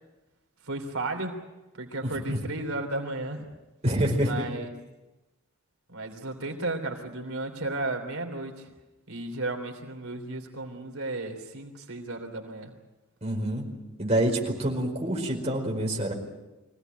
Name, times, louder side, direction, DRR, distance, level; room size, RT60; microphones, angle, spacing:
voice 1, 0.6-1.4 1.8-3.5 4.2-4.7 5.9-8.7 9.1-12.7, right 2 dB, 85° right, 4 dB, 3.3 m, -34 dB
voice 2, 2.0-2.4 3.8-4.3 13.2-13.7 14.0-16.1, right 1 dB, 30° right, -1 dB, 4.8 m, -27 dB
24.5 x 17.5 x 9.2 m, 1.1 s
head